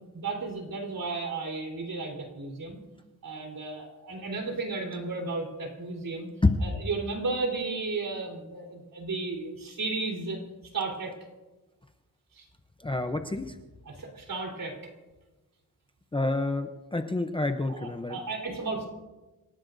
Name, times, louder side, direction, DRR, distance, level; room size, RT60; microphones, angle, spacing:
voice 1, 0.0-2.8 3.2-6.3 6.6-10.4 10.7-11.1 12.3-12.5 13.9-14.8 17.7-18.9, right 3 dB, 60° right, 1 dB, 3.9 m, -34 dB
voice 2, 12.8-13.5 16.1-18.2, left 2 dB, 15° left, 6 dB, 0.6 m, -28 dB
27.0 x 17.5 x 2.6 m, 1.1 s
wide cardioid pair, 160°, 37 cm